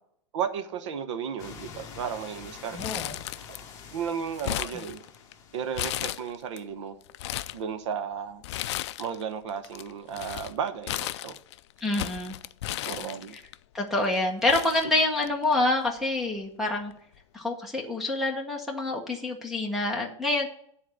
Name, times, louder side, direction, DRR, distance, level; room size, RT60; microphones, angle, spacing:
voice 1, 0.3-2.8 3.9-5.0 5.5-7.0 7.5-8.4 9.0-11.4 12.8-13.3, right 7 dB, 65° right, 1.0 m, -34 dB
sound 1, 1.4-6.2, left 6 dB, 20° left, 1.1 m, -46 dB
voice 2, 2.7-3.2 11.8-12.4 13.7-16.9 17.3-20.5, left 2 dB, ahead, 0.8 m, -27 dB
Crumpling crinkling, 2.8-3.8 4.1-5.3 5.7-6.6 7.0-7.6 8.4-9.2 9.5-13.5 14.1-14.2 14.5-15.5 15.8-15.9 16.9-17.2, left 14 dB, 60° left, 0.4 m, -34 dB
10.0 x 4.1 x 7.4 m
supercardioid pair, 170°, 16 cm